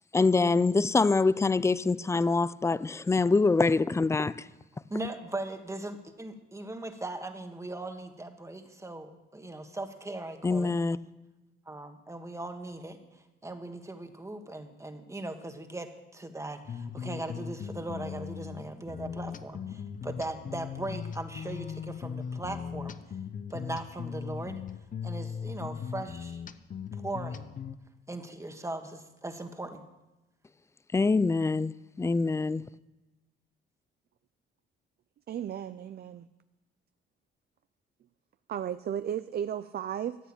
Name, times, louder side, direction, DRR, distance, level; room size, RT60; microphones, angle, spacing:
voice 1, 0.1-4.4 10.4-11.0 30.9-31.7 32.0-32.6, left 3 dB, 15° left, 0.4 m, -24 dB
voice 2, 4.9-10.7 11.7-13.0 13.4-23.0 23.5-24.6 25.0-26.4 27.0-27.5 28.1-29.8, right 2 dB, 15° right, 1.5 m, -39 dB
sound 1, 16.6-27.8, left 7 dB, 40° left, 0.8 m, -39 dB
voice 3, 35.3-36.3 38.5-40.2, right 9 dB, 55° right, 0.5 m, -34 dB
14.0 x 8.0 x 8.7 m
cardioid pair, 90°, 20 cm